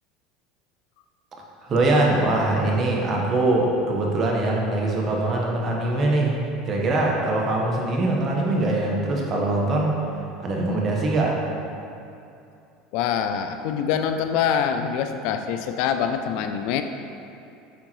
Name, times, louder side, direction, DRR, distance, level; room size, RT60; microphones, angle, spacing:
voice 1, 1.7-6.3 6.6-9.9 10.4-11.3, right 2 dB, 35° right, -2 dB, 1.1 m, -22 dB
voice 2, 12.9-16.8, left 8 dB, 65° left, 7 dB, 0.3 m, -25 dB
8.4 x 3.7 x 3.1 m, 2.7 s
supercardioid pair, 110°, 0 cm